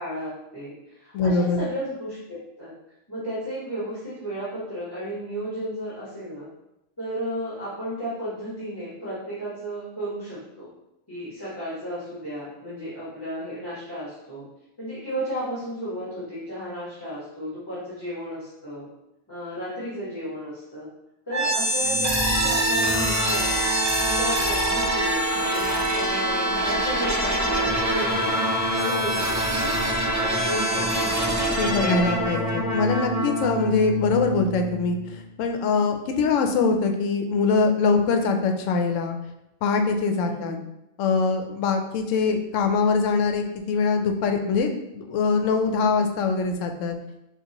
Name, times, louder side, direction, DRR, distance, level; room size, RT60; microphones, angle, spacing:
voice 1, 0.0-2.7 3.1-6.5 7.0-10.7 11.1-14.4 14.8-18.9 19.3-20.9 21.3-23.6 24.0-28.4 28.7-29.7 30.1-32.3 33.9-34.0 40.2-40.6, equal, 20° left, -11 dB, 1.5 m, -33 dB
voice 2, 1.1-1.6 31.6-39.2 39.6-40.6 41.0-47.0, left 4 dB, 85° left, 5 dB, 0.9 m, -23 dB
sound 1, 21.3-35.2, right 1 dB, 25° right, 0.4 m, -24 dB
6.6 x 2.4 x 2.9 m, 0.87 s
omnidirectional pair, 1.3 m